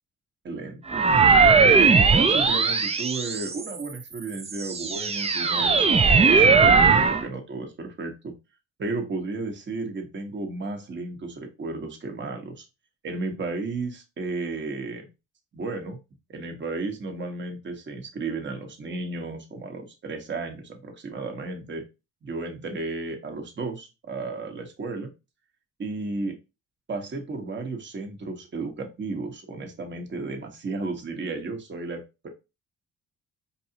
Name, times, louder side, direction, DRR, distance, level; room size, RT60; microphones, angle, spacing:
voice 1, 0.4-1.1 1.6-8.3 8.8-12.6 13.0-15.0 15.5-16.0 16.3-21.8 22.2-25.1 25.8-26.4 26.9-32.3, right 3 dB, 40° right, 4 dB, 1.1 m, -33 dB
sound 1, 0.9-3.8 4.4-7.2, right 5 dB, 20° right, 0.4 m, -19 dB
4.6 x 2.7 x 2.8 m, 0.26 s
cardioid pair, 90°, 30 cm